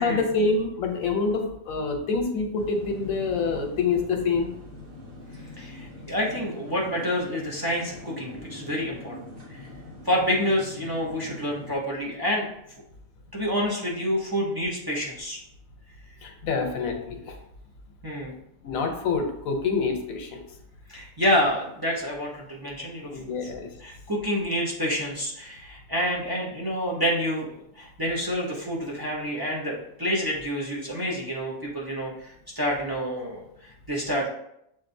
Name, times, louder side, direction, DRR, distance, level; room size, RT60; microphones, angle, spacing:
voice 1, 0.0-4.5 16.2-17.3 18.6-20.4 23.1-23.7, left 4 dB, 85° left, 4 dB, 1.2 m, -26 dB
sound 1, 2.5-11.7, left 1 dB, 75° right, 1.7 m, -43 dB
voice 2, 5.6-9.2 9.5-9.7 10.0-12.5 13.3-15.4 18.0-18.3 20.9-23.1 23.4-23.5 23.8-34.3, equal, 20° right, -4 dB, 0.7 m, -28 dB
7.4 x 2.6 x 2.6 m, 0.77 s
omnidirectional pair, 1.4 m